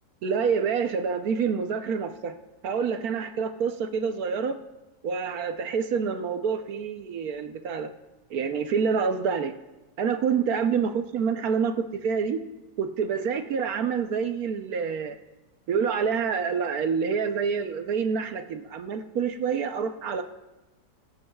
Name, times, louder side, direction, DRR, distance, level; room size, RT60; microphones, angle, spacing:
voice 1, 0.2-2.3 2.6-4.6 5.0-7.9 8.3-9.5 10.0-12.4 12.8-15.2 15.7-20.2, right 6 dB, 65° right, 8 dB, 1.2 m, -27 dB
23.5 x 12.0 x 2.3 m, 1.1 s
omnidirectional pair, 1.8 m